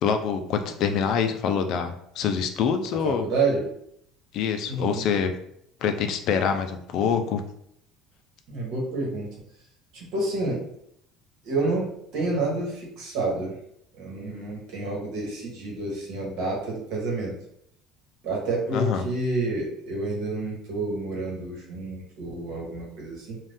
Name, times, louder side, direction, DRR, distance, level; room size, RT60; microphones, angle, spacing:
voice 1, 0.0-3.3 4.3-5.3 5.8-7.4 18.7-19.0, left 7 dB, 60° left, 7 dB, 0.4 m, -25 dB
voice 2, 3.0-3.7 4.7-5.1 8.5-9.3 9.9-10.7 11.4-13.6 14.0-17.3 18.2-23.4, right 3 dB, 70° right, -2 dB, 1.1 m, -29 dB
2.6 x 2.3 x 3.4 m, 0.72 s
cardioid pair, 120°, 0 cm